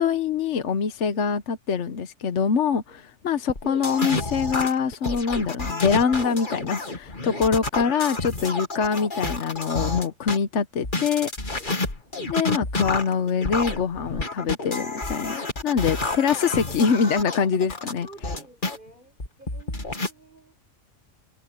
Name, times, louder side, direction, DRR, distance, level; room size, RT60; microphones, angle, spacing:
voice 1, 0.0-11.3 12.3-18.1, left 6 dB, 70° left, 1.3 m, -24 dB
sound 1, 3.5-10.4 10.8-18.8 19.2-20.1, left 2 dB, 40° left, 2.3 m, -29 dB
voice 2, 11.6-11.9 17.7-20.6, right 2 dB, 40° right, 5.4 m, -51 dB
omnidirectional pair, 1.3 m